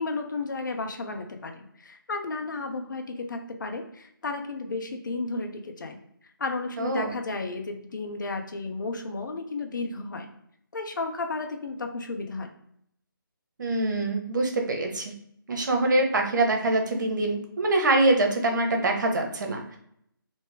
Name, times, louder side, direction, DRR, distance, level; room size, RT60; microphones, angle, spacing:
voice 1, 0.0-6.0 6.4-10.3 10.7-12.5, left 3 dB, 60° left, 5 dB, 0.8 m, -33 dB
voice 2, 6.8-7.1 13.6-15.1 15.5-19.8, right 2 dB, 55° right, 3 dB, 1.0 m, -24 dB
3.4 x 2.8 x 3.3 m, 0.71 s
figure-of-eight pair, 160°, 12 cm